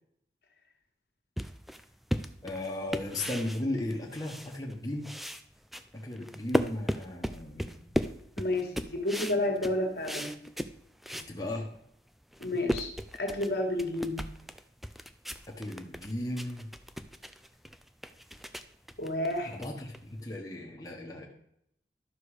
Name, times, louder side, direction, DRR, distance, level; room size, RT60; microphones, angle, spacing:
sound 1, 1.4-4.8 5.0-11.3 11.8-11.9 12.2-20.3, equal, ahead, 0.3 m, -36 dB
voice 1, 2.4-5.1 5.9-7.9 11.1-11.7 15.5-16.7 19.5-21.3, left 1 dB, 20° left, -2 dB, 1.3 m, -36 dB
voice 2, 8.4-10.3 12.4-12.9 13.2-14.3 19.0-19.6, left 1 dB, 65° left, 2 dB, 1.8 m, -30 dB
11.5 x 6.7 x 4.9 m, 0.73 s
head